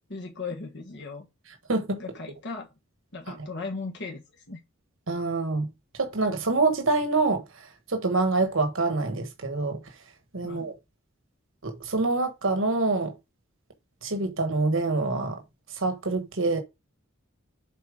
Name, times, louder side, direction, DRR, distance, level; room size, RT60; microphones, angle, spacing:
voice 1, 0.1-1.3 2.0-2.7 3.1-4.6 10.4-10.7, left 4 dB, 60° left, 1.4 m, -37 dB
voice 2, 1.7-2.0 5.1-5.7 6.0-7.4 7.9-9.8 10.3-10.7 11.6-13.1 14.0-15.4 15.7-16.6, right 3 dB, 65° right, 1.3 m, -26 dB
7.2 x 4.3 x 5.1 m
head